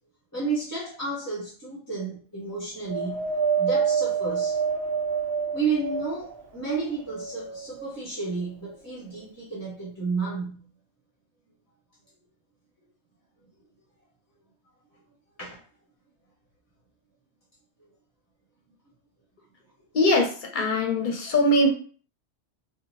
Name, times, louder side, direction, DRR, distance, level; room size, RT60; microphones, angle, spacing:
voice 1, 0.3-3.3 3.6-4.6 5.5-10.7 15.4-15.6 20.6-20.8, right 4 dB, 15° left, -6 dB, 0.7 m, -32 dB
Wind, 2.9-6.4 7.0-8.0 8.8-8.9, right 6 dB, 65° right, 0.8 m, -27 dB
voice 2, 19.9-21.7, left 1 dB, 50° left, 2 dB, 0.7 m, -22 dB
2.7 x 2.2 x 3.0 m, 0.42 s
omnidirectional pair, 1.2 m